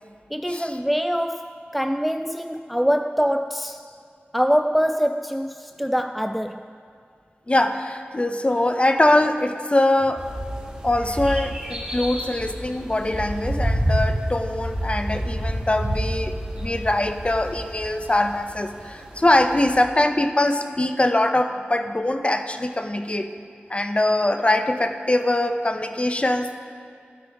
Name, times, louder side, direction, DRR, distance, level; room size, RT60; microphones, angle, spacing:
voice 1, 0.3-3.9 4.3-6.7, equal, ahead, 8 dB, 0.3 m, -24 dB
voice 2, 7.5-10.3 10.8-23.3 23.7-26.5, left 1 dB, 30° left, 8 dB, 0.7 m, -22 dB
sound 1, 10.2-19.8, equal, 25° right, 3.2 m, -29 dB
12.5 x 12.5 x 3.6 m, 2.5 s
wide cardioid pair, 50°, 4 cm